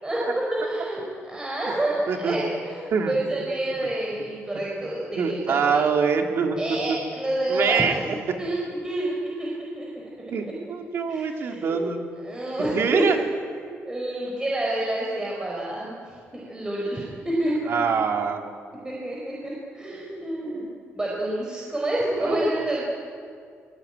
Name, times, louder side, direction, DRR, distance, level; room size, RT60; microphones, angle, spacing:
voice 1, 0.0-5.8 6.6-8.6 8.8-9.5 9.7-9.9 11.1-11.9 12.2-13.1 13.6-17.5 18.8-20.7 20.9-22.8, right 1 dB, 15° right, -4 dB, 4.8 m, -28 dB
voice 2, 5.2-6.6 6.9-7.0 7.5-7.9 10.3-12.0 12.6-13.2 17.7-18.4 22.2-22.4, right 6 dB, 60° right, 3 dB, 3.0 m, -24 dB
25.0 x 20.5 x 9.1 m, 2.2 s
cardioid pair, 125°, 5 cm